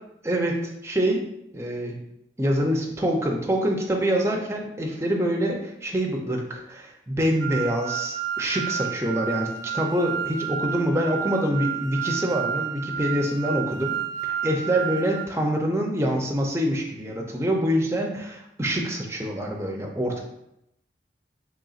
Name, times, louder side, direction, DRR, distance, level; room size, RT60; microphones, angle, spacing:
voice 1, 0.2-1.2 1.5-2.0 2.4-9.5 9.7-13.9 14.2-20.2, equal, 15° right, 0 dB, 0.4 m, -25 dB
sound 1, 7.4-15.2, right 9 dB, 75° right, 0.4 m, -31 dB
3.9 x 3.3 x 2.4 m, 0.82 s
head